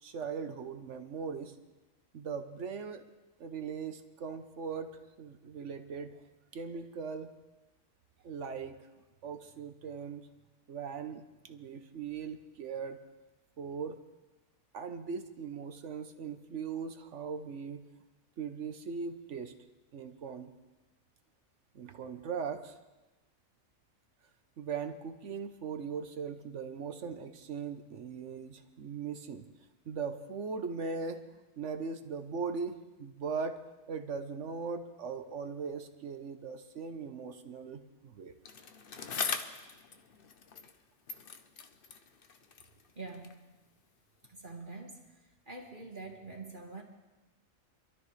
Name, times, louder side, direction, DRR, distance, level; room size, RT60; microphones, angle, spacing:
voice 1, 0.0-1.5 2.1-3.0 3.4-6.2 6.5-7.3 8.2-8.9 9.2-10.3 10.7-13.0 13.6-14.0 14.7-17.8 18.4-19.5 19.9-20.5 21.7-22.8 24.6-29.4 29.9-33.6 33.9-38.3, right 5 dB, 60° right, 8 dB, 1.2 m, -39 dB
Bicycle, 38.4-40.8 41.1-43.5 44.2-44.3, left 5 dB, 45° left, 0.9 m, -41 dB
voice 2, 43.0-43.4 44.2-46.8, right 3 dB, 35° right, 0 dB, 1.8 m, -45 dB
25.5 x 12.5 x 3.2 m, 1.1 s
omnidirectional pair, 1.5 m